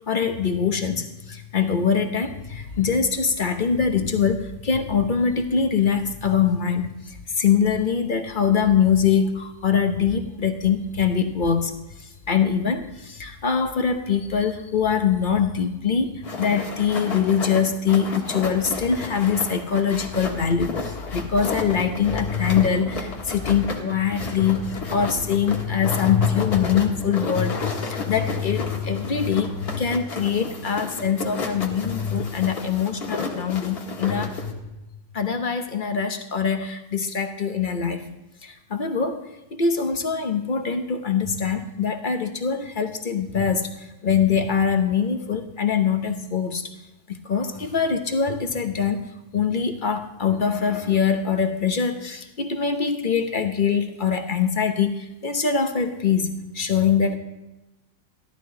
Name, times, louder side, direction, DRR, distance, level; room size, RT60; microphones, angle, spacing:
voice 1, 0.1-11.7 12.0-34.7 35.1-38.1 38.4-39.2 39.5-46.7 47.1-49.0 49.3-57.2, left 6 dB, 40° left, 6 dB, 0.8 m, -23 dB
sound 1, 16.2-34.5, left 3 dB, 55° left, 2.0 m, -33 dB
14.5 x 12.5 x 3.8 m, 1.0 s
omnidirectional pair, 1.9 m